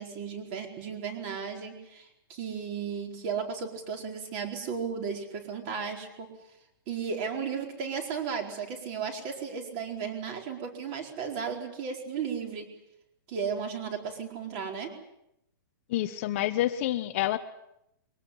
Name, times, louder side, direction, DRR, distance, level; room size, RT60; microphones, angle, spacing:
voice 1, 0.0-6.3 6.9-12.7 13.3-14.9, right 6 dB, 30° right, 4 dB, 4.5 m, -35 dB
voice 2, 15.9-17.4, left 14 dB, 35° left, 8 dB, 1.1 m, -28 dB
23.0 x 18.5 x 9.9 m, 0.82 s
hypercardioid pair, 165°, 12 cm